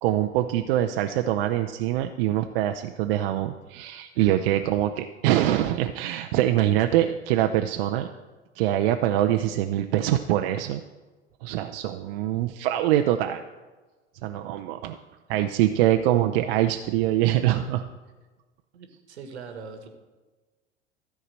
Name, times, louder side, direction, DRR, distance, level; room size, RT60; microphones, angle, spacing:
voice 1, 0.0-8.1 8.6-10.8 11.4-13.4 14.2-15.0 15.3-17.9, right 13 dB, 55° right, 6 dB, 0.6 m, -24 dB
voice 2, 18.7-19.9, right 5 dB, 75° right, 6 dB, 1.3 m, -41 dB
13.5 x 4.7 x 7.5 m, 1.3 s
figure-of-eight pair, 75°, 34 cm